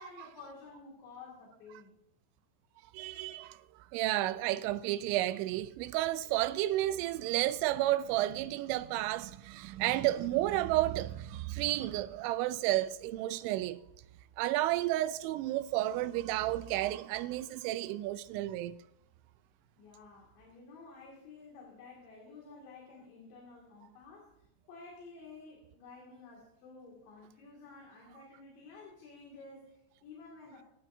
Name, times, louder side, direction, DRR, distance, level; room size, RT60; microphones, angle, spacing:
voice 1, 0.0-2.0 19.8-24.3 24.7-30.6, left 4 dB, 65° left, 4.3 m, -52 dB
voice 2, 2.9-3.6 3.9-13.8 14.4-18.8, right 15 dB, 90° right, 2.6 m, -31 dB
24.0 x 9.1 x 2.7 m
omnidirectional pair, 5.9 m